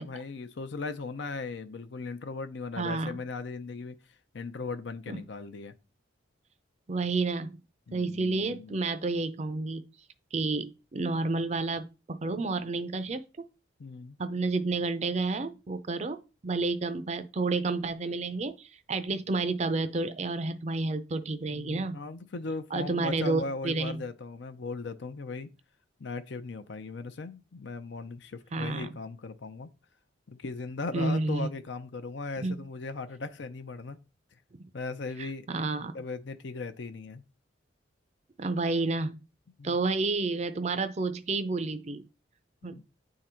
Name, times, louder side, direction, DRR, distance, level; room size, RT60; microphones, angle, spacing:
voice 1, 0.0-4.0 4.3-5.8 7.9-8.8 13.8-14.2 21.5-25.5 26.0-29.7 30.3-34.0 34.7-35.5 35.9-37.2 39.6-39.8 42.7-42.8, left 3 dB, 65° left, 0.5 m, -38 dB
voice 2, 2.8-3.2 5.1-5.2 6.9-7.6 7.9-9.8 10.3-13.2 14.2-16.2 16.4-22.0 22.7-24.0 28.5-28.9 30.9-31.5 32.4-32.6 35.2-35.9 38.4-39.2 39.6-42.1 42.6-42.8, right 3 dB, 35° right, 0.5 m, -30 dB
9.2 x 3.8 x 4.3 m
head